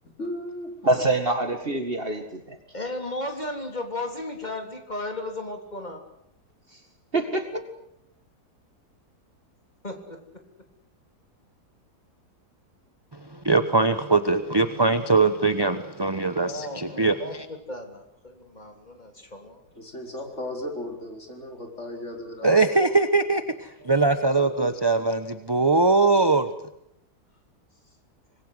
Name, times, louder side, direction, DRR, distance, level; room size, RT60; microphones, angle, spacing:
voice 1, 0.2-0.7 19.7-22.6, left 1 dB, 45° left, 3 dB, 4.8 m, -35 dB
voice 2, 0.8-2.6 7.1-7.6, right 2 dB, 35° right, 7 dB, 2.2 m, -25 dB
voice 3, 2.7-6.0 9.8-10.4 16.2-19.6 22.4-22.9 23.8-24.2, left 1 dB, 25° left, 4 dB, 3.5 m, -36 dB
voice 4, 13.1-17.1 22.4-26.5, right 3 dB, 20° right, 10 dB, 1.0 m, -21 dB
25.5 x 21.0 x 8.0 m, 0.77 s
omnidirectional pair, 1.7 m